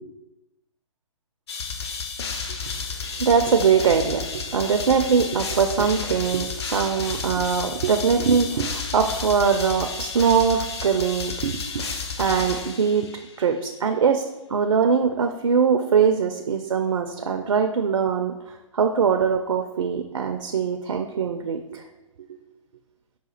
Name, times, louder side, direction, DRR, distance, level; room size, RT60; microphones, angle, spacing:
sound 1, 1.5-13.4, left 5 dB, 50° left, 0.5 m, -32 dB
voice 1, 3.2-11.9 12.2-13.1 13.4-14.2 14.5-21.9 22.3-22.4, right 6 dB, 65° right, 5 dB, 0.4 m, -22 dB
4.8 x 2.3 x 4.2 m, 1.0 s
figure-of-eight pair, 125°, 17 cm